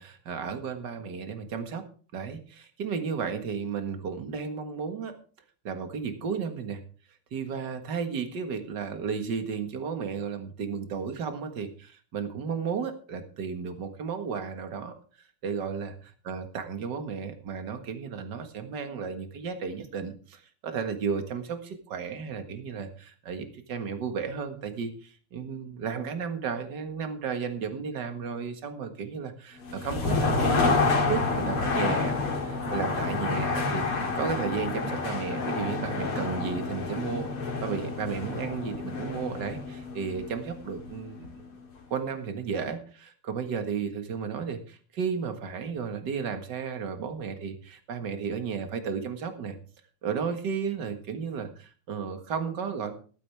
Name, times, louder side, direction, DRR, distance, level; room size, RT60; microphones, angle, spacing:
voice 1, 0.0-1.8 2.1-5.1 5.6-6.8 7.3-14.9 15.4-15.9 16.3-32.1 32.4-37.3 37.6-41.5 41.9-49.6 50.0-52.9, right 6 dB, 55° right, 7 dB, 2.2 m, -33 dB
sound 1, 29.6-41.5, left 4 dB, 75° left, 3.1 m, -29 dB
14.0 x 12.5 x 3.5 m, 0.40 s
omnidirectional pair, 2.4 m